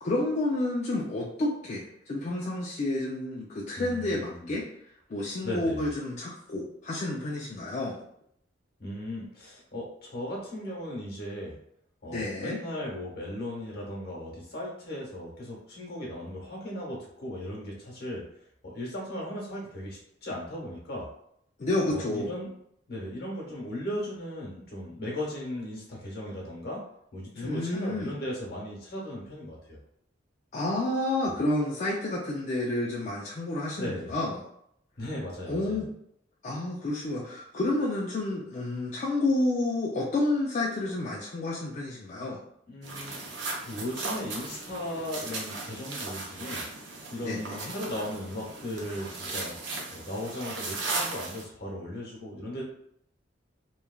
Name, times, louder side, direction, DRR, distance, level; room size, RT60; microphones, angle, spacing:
voice 1, 0.0-4.7 5.1-8.0 12.1-12.6 21.6-22.3 27.4-28.1 30.5-34.4 35.5-35.9 36.4-42.4 47.2-47.7, left 2 dB, 40° left, -4 dB, 0.4 m, -30 dB
voice 2, 3.8-4.6 5.4-5.9 8.8-11.6 12.0-18.2 18.6-21.1 21.9-22.5 22.9-26.8 27.1-29.8 31.3-31.4 33.8-34.1 35.0-35.8 42.7-46.6 47.1-49.5 49.9-52.6, left 1 dB, 60° left, -3 dB, 1.1 m, -37 dB
sound 1, 42.8-51.4, right 3 dB, 75° right, 0.6 m, -37 dB
3.1 x 2.3 x 2.2 m, 0.72 s
head